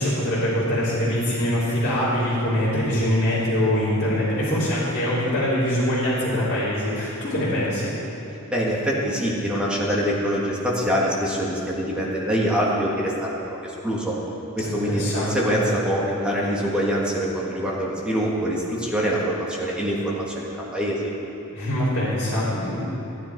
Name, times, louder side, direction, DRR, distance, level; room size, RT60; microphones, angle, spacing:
voice 1, 0.0-7.9 14.6-15.5 21.5-22.8, left 1 dB, 50° left, -12 dB, 2.9 m, -23 dB
voice 2, 8.5-13.3 13.6-14.1 14.6-21.1, equal, 5° right, -5 dB, 1.7 m, -24 dB
15.0 x 9.8 x 4.6 m, 3.0 s
head